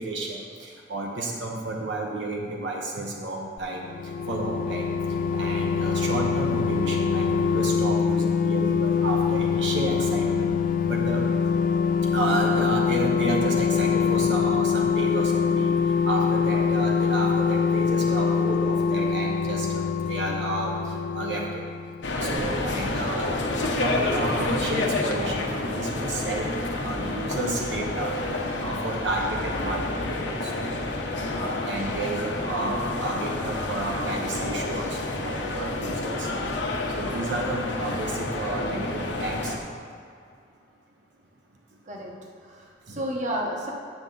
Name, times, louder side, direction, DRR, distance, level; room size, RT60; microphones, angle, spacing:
voice 1, 0.0-3.8 4.3-4.9 5.3-10.5 10.9-11.2 12.1-15.7 16.0-21.6 22.1-23.3 23.6-26.5 26.8-28.2 28.6-30.7 31.3-36.3 37.0-39.5 42.9-43.1, right 2 dB, 70° right, -1 dB, 1.0 m, -31 dB
sound 1, 3.6-22.1 22.4-22.5, left 6 dB, 50° left, 0.3 m, -24 dB
sound 2, 22.0-39.6, left 2 dB, 75° left, 0.9 m, -29 dB
voice 2, 42.5-43.7, right 1 dB, 45° right, -1 dB, 1.1 m, -31 dB
9.5 x 6.6 x 3.9 m, 2.3 s
head